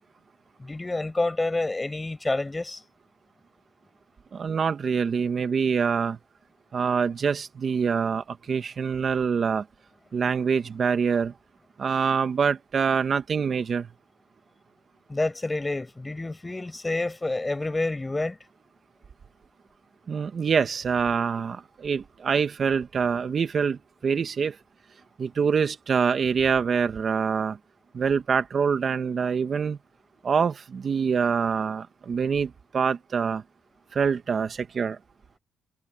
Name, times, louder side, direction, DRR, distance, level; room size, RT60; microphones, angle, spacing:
voice 1, 0.6-2.8 15.1-18.4, left 2 dB, 15° left, 6.1 m, -28 dB
voice 2, 4.3-6.2 6.7-9.6 10.1-11.3 11.8-13.9 20.1-24.5 25.2-27.6 27.9-29.8 30.2-33.4 33.9-35.0, right 6 dB, 45° right, 1.4 m, -25 dB
cardioid pair, 90°, 0 cm